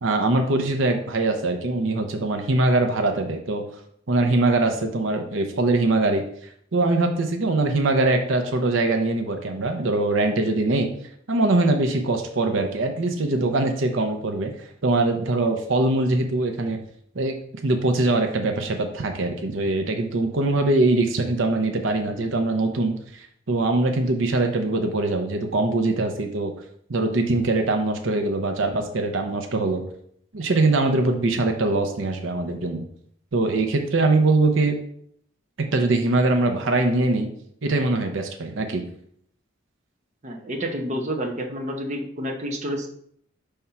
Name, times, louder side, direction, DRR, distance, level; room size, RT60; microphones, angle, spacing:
voice 1, 0.0-3.7 4.1-6.2 6.7-10.9 11.3-16.8 17.1-17.3 17.6-26.5 26.9-29.8 30.3-32.8 33.3-34.7 35.7-37.3 37.6-38.8, right 2 dB, 70° right, 5 dB, 0.7 m, -22 dB
voice 2, 40.2-42.9, equal, 35° right, 2 dB, 0.9 m, -29 dB
5.5 x 3.5 x 5.7 m, 0.67 s
head